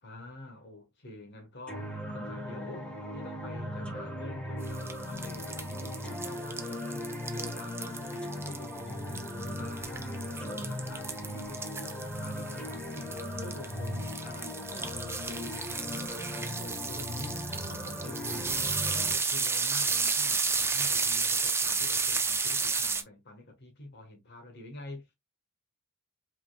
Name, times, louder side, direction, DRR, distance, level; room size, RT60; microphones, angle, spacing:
voice 1, 0.0-25.2, left 2 dB, 50° left, 1.3 m, -47 dB
sound 1, 1.7-19.1, left 1 dB, 5° left, 1.2 m, -38 dB
sound 2, 4.6-23.0, right 4 dB, 10° right, 0.5 m, -32 dB
5.2 x 3.8 x 2.2 m
head